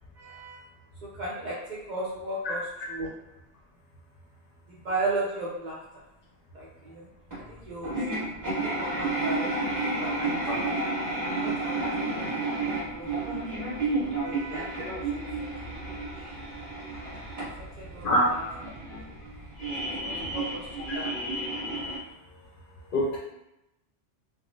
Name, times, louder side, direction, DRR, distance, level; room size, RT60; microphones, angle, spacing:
voice 1, 0.1-0.7 1.0-2.6 2.9-3.2 4.7-5.8 6.5-7.1 7.5-10.7 11.3-13.4 13.7-14.8 15.4-15.5 16.1-16.3 17.6-18.5 19.8-21.1, right 2 dB, 55° right, -6 dB, 0.5 m, -36 dB
voice 2, 2.4-2.5 2.8-2.9 10.4-10.6 18.0-18.3 20.2-20.3 22.9-23.2, equal, 60° left, -3 dB, 0.6 m, -25 dB
sound 1, 7.3-22.0, right 2 dB, 15° right, 1.3 m, -31 dB
3.3 x 2.0 x 2.5 m, 0.90 s
omnidirectional pair, 1.2 m